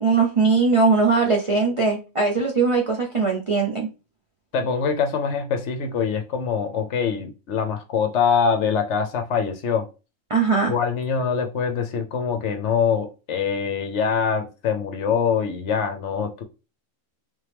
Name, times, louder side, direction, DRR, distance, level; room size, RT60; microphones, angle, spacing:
voice 1, 0.0-3.9 10.3-10.7, right 4 dB, 55° right, 0 dB, 0.3 m, -20 dB
voice 2, 4.5-9.9 10.7-16.4, left 6 dB, 65° left, 6 dB, 0.8 m, -24 dB
3.6 x 3.1 x 3.3 m, 0.31 s
omnidirectional pair, 1.5 m